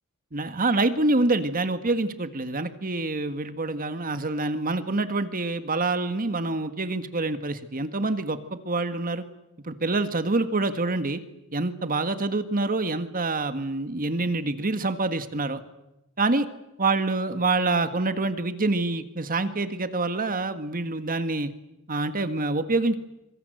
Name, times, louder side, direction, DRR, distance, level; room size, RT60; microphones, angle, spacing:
voice 1, 0.3-9.2 9.6-11.2 11.5-15.6 16.2-16.5 16.8-21.5 21.9-22.9, right 2 dB, 40° right, 10 dB, 1.7 m, -26 dB
26.0 x 24.5 x 8.0 m, 0.89 s
head